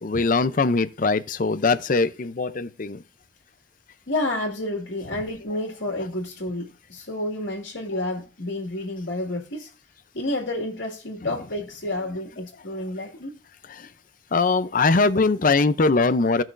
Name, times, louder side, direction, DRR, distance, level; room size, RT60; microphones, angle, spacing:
voice 1, 0.0-3.0 11.2-11.3 13.7-13.9 14.3-16.4, left 3 dB, 45° left, 0.5 m, -21 dB
voice 2, 4.1-9.7 10.1-13.4, left 1 dB, 70° left, 2.0 m, -30 dB
16.0 x 6.1 x 2.5 m
head